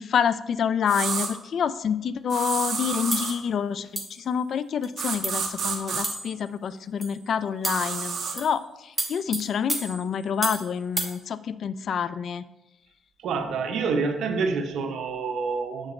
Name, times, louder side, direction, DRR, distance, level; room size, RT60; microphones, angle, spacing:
voice 1, 0.0-12.5, left 7 dB, 60° left, 15 dB, 0.3 m, -27 dB
sound 1, 0.9-1.3 2.3-3.4 5.0-6.0 7.6-8.4, right 5 dB, 55° right, 1.2 m, -29 dB
sound 2, 3.1-3.3 4.0-4.2 4.8-4.9 5.2-5.5 6.0-6.4 7.0-7.2 7.6-7.9 8.4-8.6 9.0-10.7 11.0-11.2, right 2 dB, 15° right, 1.1 m, -31 dB
voice 2, 13.2-15.9, right 4 dB, 75° right, 5 dB, 0.8 m, -27 dB
6.9 x 6.4 x 3.1 m, 0.94 s
cardioid pair, 90°, 0 cm